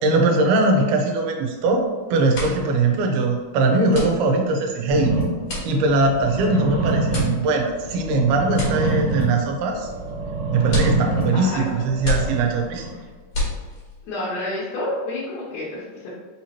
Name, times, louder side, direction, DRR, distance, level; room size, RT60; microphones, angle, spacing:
voice 1, 0.0-5.2 5.7-9.9 10.5-12.8, right 3 dB, 85° right, 2 dB, 2.5 m, -21 dB
sound 1, 1.6-1.9 2.2-14.1, left 1 dB, 55° left, 1.7 m, -31 dB
sound 2, 4.9-12.9, right 3 dB, 60° right, 2.0 m, -26 dB
voice 2, 11.3-11.7 14.0-16.1, left 1 dB, 75° left, -7 dB, 2.0 m, -29 dB
5.6 x 2.9 x 2.8 m, 1.4 s
omnidirectional pair, 4.4 m